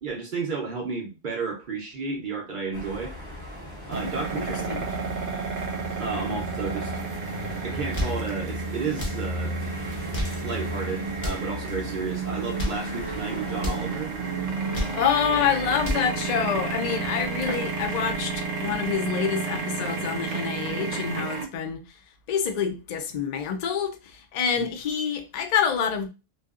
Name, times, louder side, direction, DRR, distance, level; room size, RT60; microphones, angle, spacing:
voice 1, 0.0-3.1 3.9-4.8 6.0-7.0 7.6-9.5 10.4-14.1 24.5-24.7, right 4 dB, 55° right, 0.6 m, -32 dB
sound 1, 2.7-18.9, left 1 dB, 20° left, 1.0 m, -38 dB
sound 2, 3.9-21.4, right 5 dB, 75° right, 1.0 m, -32 dB
voice 2, 4.5-4.9 14.6-21.8 22.3-26.1, left 7 dB, 85° left, 0.3 m, -27 dB
sound 3, 7.8-8.2 8.9-9.2 9.9-10.4 11.1-11.5 12.4-12.9 13.6-13.9 14.5-15.0 15.6-16.1, left 1 dB, 45° left, 0.6 m, -31 dB
2.6 x 2.3 x 2.3 m
omnidirectional pair, 1.3 m